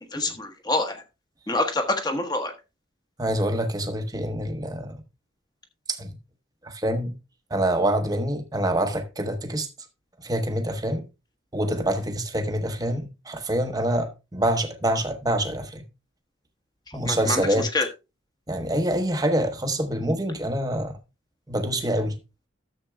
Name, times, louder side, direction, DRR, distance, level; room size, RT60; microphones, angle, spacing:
voice 1, 0.1-1.0 1.5-2.5 16.9-17.9, left 2 dB, 20° left, 1.2 m, -26 dB
voice 2, 3.2-4.9 5.9-6.1 6.7-7.1 7.5-9.7 10.2-11.0 11.5-15.8 16.9-17.7 18.5-20.9 21.5-22.1, right 1 dB, 15° right, 1.0 m, -26 dB
13.5 x 7.5 x 2.3 m
head